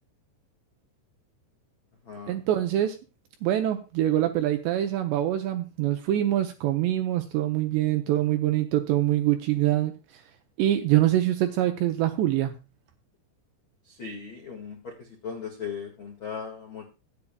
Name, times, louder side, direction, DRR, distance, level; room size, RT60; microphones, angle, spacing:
voice 1, 2.3-3.0 3.4-9.9 10.6-12.6, right 13 dB, 80° right, 6 dB, 2.6 m, -24 dB
voice 2, 13.9-14.9 15.2-16.9, left 6 dB, 60° left, 1 dB, 1.2 m, -37 dB
24.5 x 8.5 x 2.3 m, 0.28 s
omnidirectional pair, 5.8 m